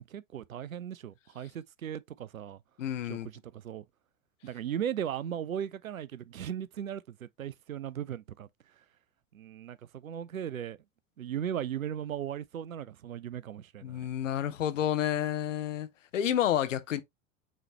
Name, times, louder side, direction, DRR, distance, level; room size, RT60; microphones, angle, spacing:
voice 1, 0.0-2.6 3.1-3.2 3.5-3.8 4.4-8.5 9.3-10.8 11.2-14.1, right 9 dB, 85° right, 0.5 m, -37 dB
voice 2, 2.8-3.3 13.8-17.0, left 10 dB, 65° left, 0.8 m, -30 dB
5.6 x 3.2 x 2.9 m
figure-of-eight pair, 85°, 40 cm